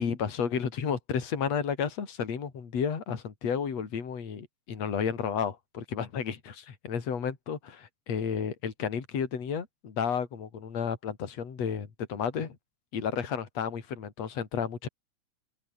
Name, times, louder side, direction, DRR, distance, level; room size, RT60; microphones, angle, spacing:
voice 1, 0.0-12.6 12.9-14.9, left 7 dB, 55° left, 4.2 m, -32 dB
open air
omnidirectional pair, 3.5 m